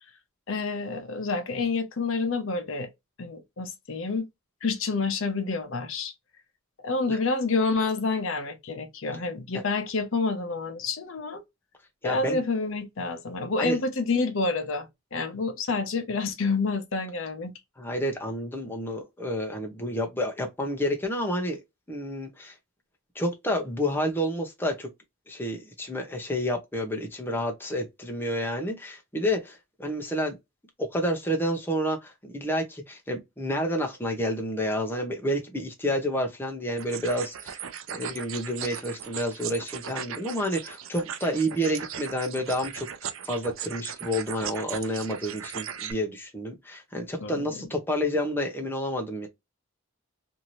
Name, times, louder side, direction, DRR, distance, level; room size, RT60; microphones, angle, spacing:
voice 1, 0.5-2.9 3.2-4.3 4.6-6.1 6.8-11.4 12.0-17.5 47.2-47.7, left 3 dB, 65° left, 0.7 m, -28 dB
voice 2, 12.0-12.4 13.6-13.8 17.8-21.6 21.9-22.5 23.1-24.9 25.3-30.4 30.8-37.6 37.9-42.9 43.2-49.3, equal, 10° left, 0.6 m, -29 dB
sound 1, 36.8-45.9, right 8 dB, 65° right, 0.5 m, -38 dB
2.6 x 2.6 x 3.0 m
head